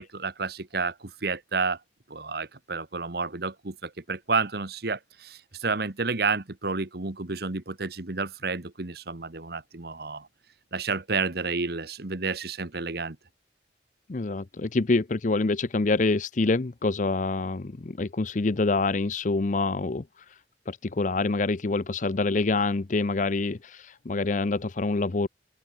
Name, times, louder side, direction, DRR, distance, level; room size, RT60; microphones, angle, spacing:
voice 1, 0.0-1.8 2.1-10.3 10.7-13.2, right 4 dB, 60° right, 1.4 m, -30 dB
voice 2, 14.1-20.4 20.7-25.3, left 3 dB, 45° left, 0.6 m, -26 dB
open air
head